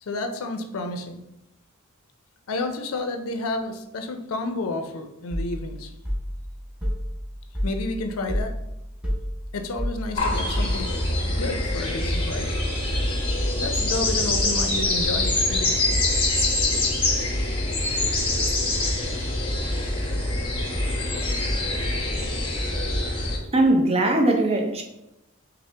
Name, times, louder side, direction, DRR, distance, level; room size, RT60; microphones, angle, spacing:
voice 1, 0.0-1.2 2.5-5.9 7.6-8.5 9.5-10.9 11.2-12.6 13.4-15.9, left 2 dB, 85° left, 0.5 m, -31 dB
sound 1, 5.3-11.1, equal, 5° right, 0.8 m, -31 dB
sound 2, 10.2-23.4, left 2 dB, 25° left, 0.9 m, -24 dB
voice 2, 23.5-24.8, right 1 dB, 30° right, 0.6 m, -20 dB
5.6 x 2.0 x 3.3 m
head